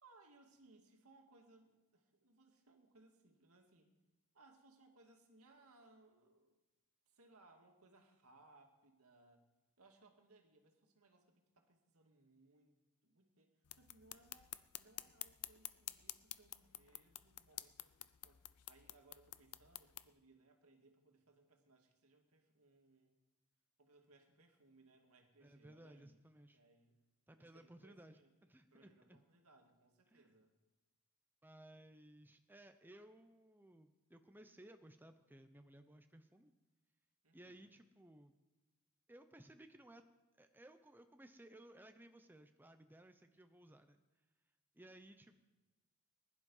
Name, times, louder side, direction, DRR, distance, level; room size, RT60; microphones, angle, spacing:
voice 1, 0.0-3.9 4.3-6.6 7.1-9.5 9.8-12.8 13.0-13.5 13.8-23.2 23.8-26.2 26.5-27.0 27.4-28.3 28.7-30.5 37.2-37.7, right 2 dB, 75° right, 3 dB, 2.3 m, -68 dB
sound 1, 13.7-20.1, left 15 dB, 85° left, 0.6 m, -51 dB
voice 2, 25.4-26.6 27.3-29.2 30.1-30.3 31.4-36.5 37.3-38.3 39.1-40.0 40.3-44.0 44.7-45.4, right 1 dB, 10° right, 7 dB, 0.7 m, -60 dB
20.0 x 11.0 x 5.5 m, 1.1 s
head